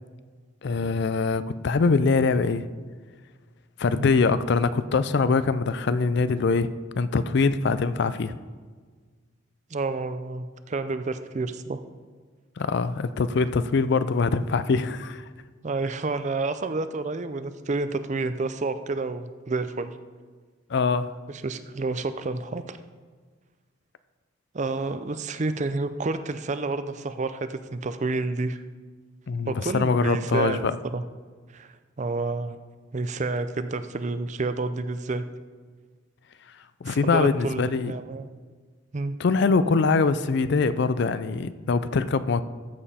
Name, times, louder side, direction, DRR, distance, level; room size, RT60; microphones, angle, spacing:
voice 1, 0.6-2.6 3.8-6.7 7.0-8.4 12.6-15.2 20.7-21.1 29.3-30.8 36.8-37.9 39.2-42.4, left 4 dB, 55° left, 14 dB, 0.4 m, -23 dB
voice 2, 9.7-11.8 15.6-19.9 21.3-22.8 24.5-28.6 29.5-30.6 30.9-31.0 31.5-32.6 32.9-35.2 36.9-38.3 38.9-39.2, right 3 dB, 35° right, 11 dB, 0.5 m, -29 dB
14.0 x 7.3 x 4.2 m, 1.5 s
head